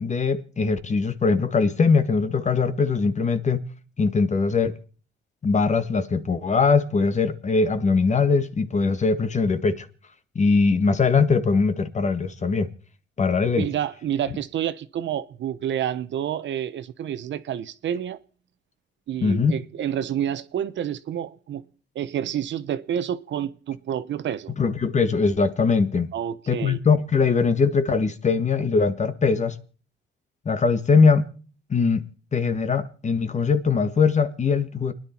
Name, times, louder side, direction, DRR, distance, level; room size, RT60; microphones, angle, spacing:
voice 1, 0.0-3.6 4.0-4.7 5.4-9.9 10.3-12.7 13.2-13.7 19.2-19.6 24.6-26.1 26.5-29.6 30.4-31.3 31.7-32.0 32.3-34.9, left 4 dB, 35° left, 1.5 m, -21 dB
voice 2, 13.6-18.2 19.1-21.6 21.9-24.5 26.1-26.8, right 10 dB, 65° right, 1.0 m, -29 dB
29.5 x 10.5 x 4.4 m
cardioid pair, 90°, 20 cm